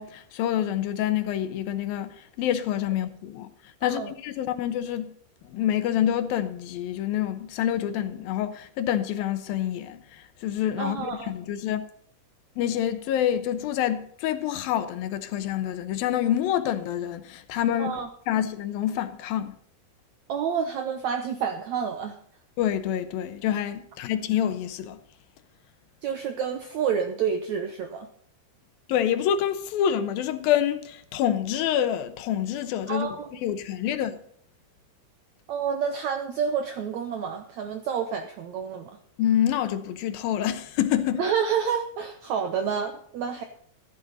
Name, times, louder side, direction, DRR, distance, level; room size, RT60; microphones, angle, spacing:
voice 1, 0.0-3.5 3.8-5.1 5.4-11.8 12.6-19.5 22.6-25.0 28.9-34.2 39.2-41.2, left 10 dB, 75° left, 2.5 m, -27 dB
voice 2, 3.8-4.1 10.8-11.3 17.8-18.1 20.3-22.2 26.0-28.1 32.9-33.3 35.5-39.0 41.2-43.4, right 7 dB, 75° right, 1.6 m, -29 dB
15.5 x 12.0 x 4.0 m
omnidirectional pair, 4.5 m